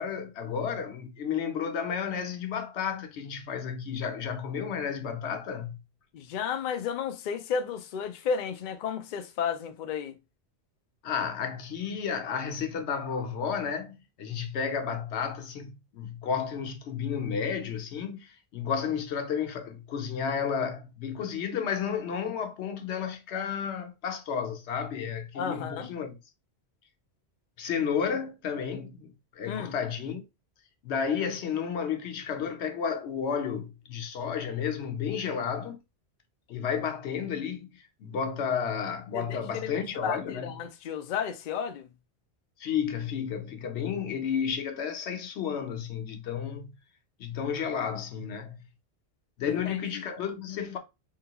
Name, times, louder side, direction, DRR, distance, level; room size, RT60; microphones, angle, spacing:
voice 1, 0.0-5.8 11.0-26.2 27.6-30.2 30.8-35.8 36.5-40.5 42.6-46.7 47.2-48.6 49.4-50.8, left 7 dB, 90° left, 1.0 m, -32 dB
voice 2, 6.1-10.2 25.3-25.9 29.5-29.7 39.1-41.9 49.4-50.0, left 7 dB, 60° left, 0.6 m, -33 dB
3.7 x 2.3 x 2.8 m
omnidirectional pair, 1.1 m